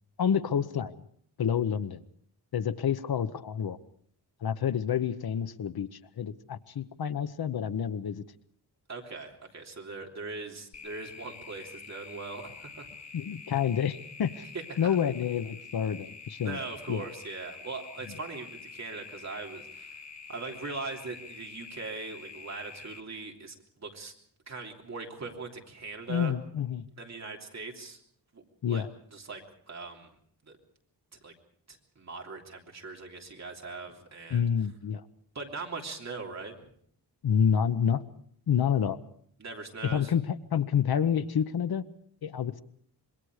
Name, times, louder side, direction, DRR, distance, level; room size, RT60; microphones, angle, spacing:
voice 1, 0.2-0.9 1.4-2.0 2.5-3.8 4.4-5.9 6.2-8.2 13.1-14.4 14.8-16.6 16.9-17.1 26.1-26.8 28.6-28.9 34.3-35.0 37.2-38.0 38.5-39.0 39.8-41.8 42.2-42.6, left 8 dB, 65° left, 13 dB, 0.9 m, -28 dB
voice 2, 8.9-12.9 14.5-15.0 16.4-20.0 20.3-24.1 24.5-26.3 27.0-28.0 28.3-28.4 28.7-28.8 29.1-30.1 30.4-30.6 31.2-31.3 31.7-34.4 35.3-36.6 39.4-40.1, right 3 dB, 40° right, 1 dB, 3.3 m, -40 dB
sound 1, 10.7-23.0, left 5 dB, 40° left, 1.5 m, -47 dB
26.0 x 22.0 x 4.9 m, 0.62 s
wide cardioid pair, 165°, 40 cm